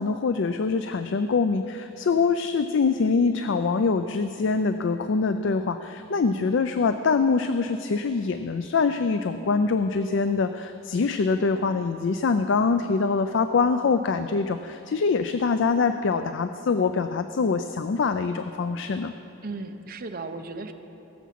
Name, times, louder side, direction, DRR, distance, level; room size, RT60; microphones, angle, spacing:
voice 1, 0.0-19.1, left 4 dB, 60° left, 10 dB, 0.4 m, -24 dB
voice 2, 19.4-20.7, right 3 dB, 45° right, 7 dB, 0.7 m, -36 dB
18.5 x 7.3 x 5.9 m, 2.9 s
head